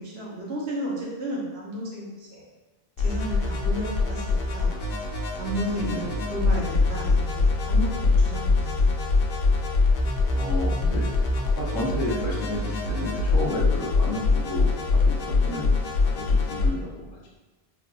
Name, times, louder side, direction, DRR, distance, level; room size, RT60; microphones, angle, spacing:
voice 1, 0.0-2.4 3.0-4.8 5.4-8.9, right 1 dB, 85° right, -4 dB, 1.1 m, -33 dB
sound 1, 3.0-16.7, left 3 dB, 70° left, 0.8 m, -24 dB
voice 2, 5.8-6.2 10.3-11.1 11.6-15.7 16.0-17.3, left 1 dB, 35° left, -3 dB, 0.4 m, -32 dB
3.4 x 2.3 x 2.3 m, 1.1 s
omnidirectional pair, 1.0 m